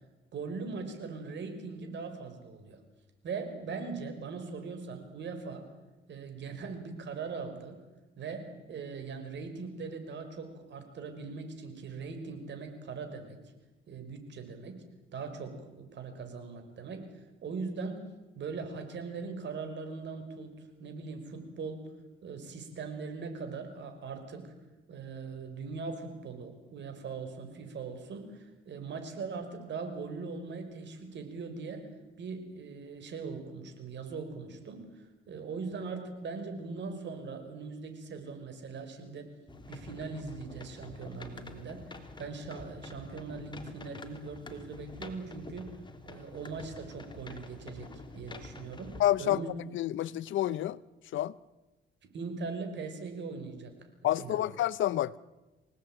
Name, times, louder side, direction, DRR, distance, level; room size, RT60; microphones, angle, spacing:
voice 1, 0.3-2.8 3.2-5.6 6.1-7.8 8.2-13.4 13.9-14.8 15.1-17.0 17.4-18.1 18.4-21.9 22.2-24.5 24.9-31.9 32.2-39.3 39.7-45.7 46.1-49.5 52.0-53.7 54.2-54.5, right 4 dB, 65° right, 5.5 m, -40 dB
sound 1, 39.5-49.0, left 2 dB, 25° left, 3.2 m, -47 dB
voice 2, 49.0-49.4 49.7-50.8 51.1-51.3 54.0-55.2, left 13 dB, 75° left, 0.8 m, -28 dB
27.0 x 17.5 x 9.1 m
cardioid pair, 90°, 20 cm